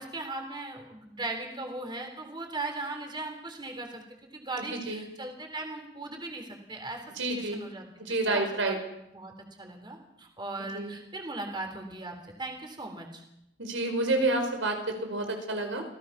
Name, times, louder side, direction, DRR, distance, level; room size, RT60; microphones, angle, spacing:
voice 1, 0.0-4.0 4.3-7.0 7.4-7.9 8.2-8.8 9.1-9.3 9.6-13.2, right 2 dB, 25° right, 4 dB, 3.6 m, -38 dB
voice 2, 4.7-5.0 7.2-7.6 8.0-8.8 10.7-10.9 13.6-15.8, right 2 dB, 85° right, 4 dB, 5.2 m, -29 dB
28.0 x 17.0 x 5.9 m, 0.82 s
head